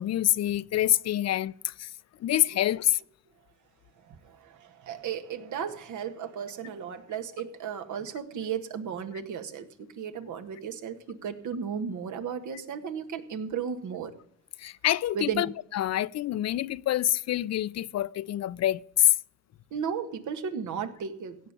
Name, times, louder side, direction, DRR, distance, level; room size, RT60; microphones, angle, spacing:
voice 1, 0.0-1.9 2.2-3.0 14.6-19.2, left 13 dB, 60° left, 0.5 m, -26 dB
voice 2, 4.1-14.1 15.1-15.4 19.7-21.4, right 7 dB, 75° right, 1.8 m, -35 dB
16.5 x 5.8 x 8.3 m
cardioid pair, 90°, 30 cm